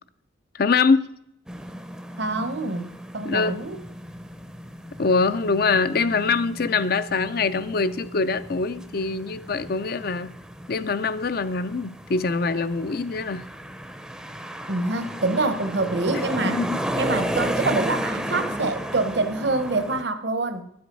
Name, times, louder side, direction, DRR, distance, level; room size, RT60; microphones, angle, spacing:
voice 1, 0.5-1.1 3.2-3.5 5.0-10.3 10.7-13.4 16.4-16.8, left 4 dB, 50° left, 0.5 m, -23 dB
sound 1, 1.5-20.0, equal, 5° right, 0.6 m, -34 dB
voice 2, 2.2-3.8 14.7-16.6 16.9-20.6, right 3 dB, 60° right, 1.0 m, -26 dB
12.5 x 7.9 x 5.4 m
head